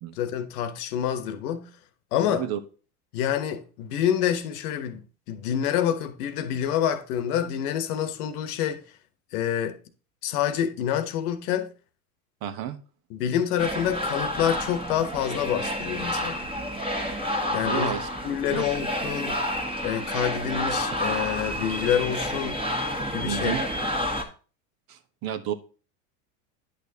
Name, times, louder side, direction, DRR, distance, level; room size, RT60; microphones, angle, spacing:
voice 1, 0.2-1.7 2.1-2.5 3.1-8.8 9.3-9.8 10.2-11.7 13.1-16.5 17.5-17.9 18.2-19.4 19.8-22.6 23.1-23.6, left 9 dB, 70° left, 1.1 m, -27 dB
voice 2, 2.3-2.6 12.4-12.8 17.6-18.1 18.5-18.7 23.3-23.6 24.9-25.5, right 10 dB, 50° right, 1.0 m, -31 dB
sound 1, 13.6-24.2, equal, 10° right, 1.5 m, -29 dB
10.0 x 6.4 x 2.8 m
hypercardioid pair, 85°, 47 cm